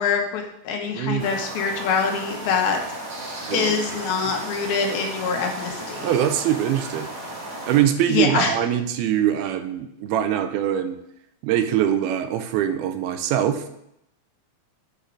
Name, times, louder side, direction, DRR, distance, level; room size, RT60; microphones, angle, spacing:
voice 1, 0.0-2.8 3.5-6.1 8.1-8.5, left 5 dB, 75° left, 3 dB, 3.0 m, -24 dB
voice 2, 1.0-1.3 3.5-3.9 6.0-7.1 7.7-11.0 11.4-13.7, right 10 dB, 85° right, 8 dB, 2.6 m, -23 dB
sound 1, 1.2-7.8, right 1 dB, 40° right, 1.3 m, -35 dB
8.2 x 5.0 x 6.5 m, 0.78 s
omnidirectional pair, 4.5 m